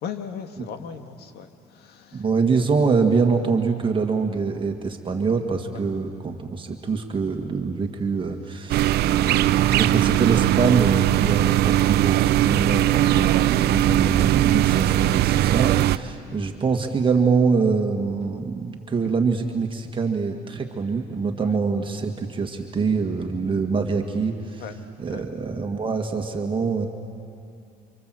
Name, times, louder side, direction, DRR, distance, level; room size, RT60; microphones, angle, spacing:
voice 1, 0.0-2.2 8.7-9.8 13.2-13.3 13.7-13.9 16.2-16.4 21.4-21.6 24.6-24.8 25.1-25.2, left 7 dB, 70° left, 7 dB, 2.0 m, -39 dB
voice 2, 2.1-24.6 25.0-26.9, right 4 dB, 30° right, 3 dB, 2.0 m, -24 dB
sound 1, 8.7-16.0, right 14 dB, 70° right, 0.6 m, -20 dB
29.5 x 25.5 x 7.8 m, 2.4 s
cardioid pair, 110°, 17 cm